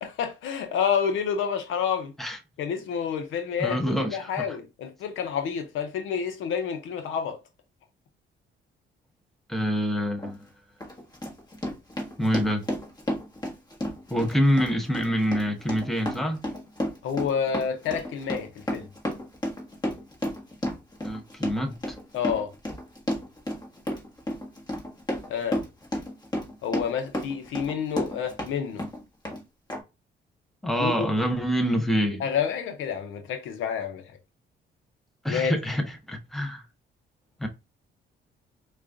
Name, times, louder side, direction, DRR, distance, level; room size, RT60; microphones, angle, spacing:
voice 1, 0.0-2.1 2.6-3.8 4.1-7.4 17.0-18.9 22.1-22.5 25.3-25.6 26.6-28.8 30.8-31.1 32.2-34.0 35.3-35.5, left 7 dB, 80° left, 0.7 m, -29 dB
voice 2, 3.6-4.6 9.5-10.5 12.2-12.6 14.1-16.4 21.0-22.0 30.6-32.2 35.2-36.6 37.4-37.5, equal, ahead, 0.9 m, -26 dB
Run, 10.2-10.3 10.8-28.5 28.8-29.4 29.7-29.8, left 1 dB, 20° left, 1.5 m, -32 dB
4.6 x 2.4 x 2.5 m
cardioid pair, 90°, 20 cm